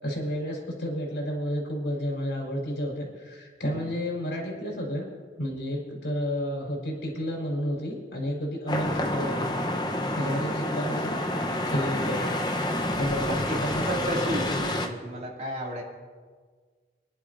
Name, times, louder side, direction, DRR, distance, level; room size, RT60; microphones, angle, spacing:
voice 1, 0.0-5.1 5.4-9.5 9.8-11.2 11.4-12.4 13.0-14.3, equal, 85° left, -1 dB, 4.3 m, -31 dB
sound 1, 8.7-14.9, left 1 dB, 25° left, 0.8 m, -28 dB
voice 2, 10.2-10.5 11.9-12.2 13.2-15.8, equal, 40° right, -2 dB, 2.4 m, -34 dB
25.5 x 11.0 x 2.6 m, 1.5 s
head